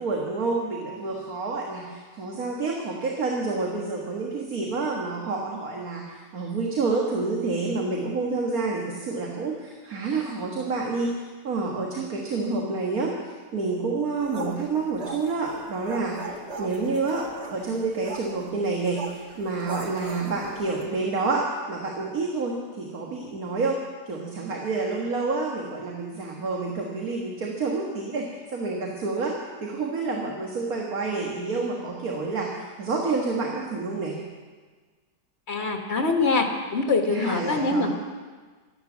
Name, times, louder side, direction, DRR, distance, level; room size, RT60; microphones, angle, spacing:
voice 1, 0.0-23.8 24.1-34.2 37.1-37.9, right 3 dB, 60° right, -1 dB, 2.0 m, -28 dB
sound 1, 14.2-20.9, right 2 dB, 40° right, 1.5 m, -39 dB
voice 2, 35.5-37.9, left 3 dB, 40° left, 3 dB, 1.5 m, -24 dB
13.0 x 11.5 x 7.3 m, 1.4 s
omnidirectional pair, 1.8 m